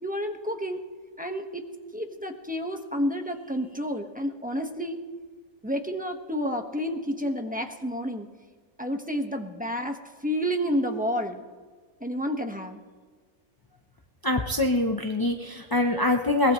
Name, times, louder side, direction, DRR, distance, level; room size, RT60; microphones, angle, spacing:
voice 1, 0.0-0.8 1.2-1.7 1.9-5.0 5.6-8.3 8.8-11.4 12.0-12.8, equal, 5° right, 3 dB, 1.2 m, -30 dB
voice 2, 14.2-16.5, left 2 dB, 30° left, 3 dB, 0.4 m, -24 dB
22.5 x 19.5 x 3.1 m, 1.5 s
omnidirectional pair, 1.5 m